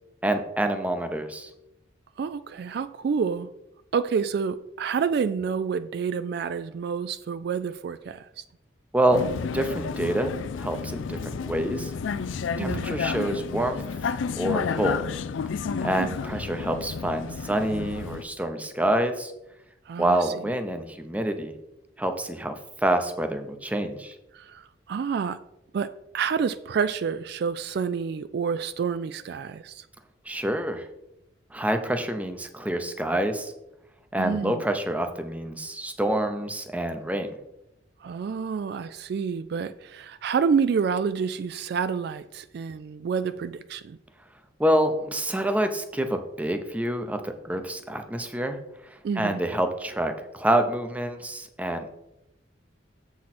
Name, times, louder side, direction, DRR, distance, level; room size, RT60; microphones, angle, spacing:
voice 1, 0.2-1.5 8.9-9.2 9.5-11.9 12.6-13.8 14.4-15.0 15.8-19.3 20.0-21.5 22.0-22.5 22.8-24.1 30.3-30.8 31.5-33.5 34.1-37.4 44.6-48.6 49.2-52.0, right 1 dB, 10° right, 6 dB, 0.7 m, -27 dB
voice 2, 2.2-3.5 3.9-8.2 12.6-12.9 15.9-16.2 19.9-20.3 24.3-25.4 25.7-29.8 34.2-34.6 38.0-44.0 49.0-49.4, right 6 dB, 60° right, 13 dB, 0.3 m, -28 dB
Vehicle, 9.1-18.2, left 5 dB, 90° left, 0.4 m, -31 dB
7.5 x 6.1 x 4.3 m, 0.88 s
head